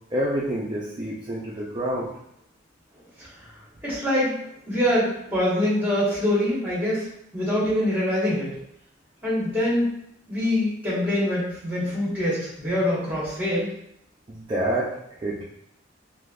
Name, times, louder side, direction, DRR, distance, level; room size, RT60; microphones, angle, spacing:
voice 1, 0.1-2.1 14.3-15.4, right 1 dB, 25° right, -5 dB, 0.4 m, -28 dB
voice 2, 3.8-4.4 4.7-7.0 7.3-8.5 9.2-9.9 10.3-13.7, left 1 dB, 10° right, -8 dB, 1.3 m, -24 dB
3.4 x 2.6 x 2.4 m, 0.74 s
head